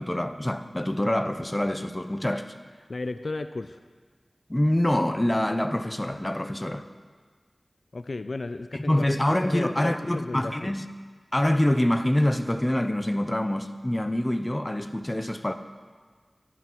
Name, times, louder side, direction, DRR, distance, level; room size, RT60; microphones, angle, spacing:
voice 1, 0.0-2.5 4.5-6.8 8.7-10.9 11.3-15.5, left 1 dB, 20° left, 9 dB, 0.6 m, -25 dB
voice 2, 2.9-3.8 7.9-8.9 9.4-10.8, left 3 dB, 70° left, 10 dB, 0.3 m, -34 dB
12.0 x 11.0 x 3.0 m, 1.5 s
cardioid pair, 40°, 0 cm